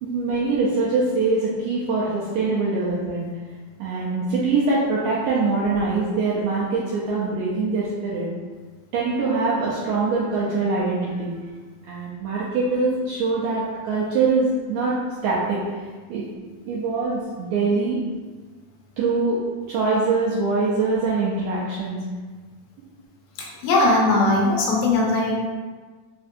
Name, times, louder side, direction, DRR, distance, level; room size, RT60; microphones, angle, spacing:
voice 1, 0.0-3.2 3.8-8.3 8.9-11.3 11.9-14.9 15.2-16.2 16.6-18.0 19.0-19.4 19.7-22.0, right 3 dB, 80° right, -7 dB, 1.8 m, -23 dB
voice 2, 23.4-25.4, left 2 dB, 80° left, -2 dB, 1.7 m, -19 dB
4.9 x 2.5 x 2.5 m, 1.4 s
omnidirectional pair, 3.5 m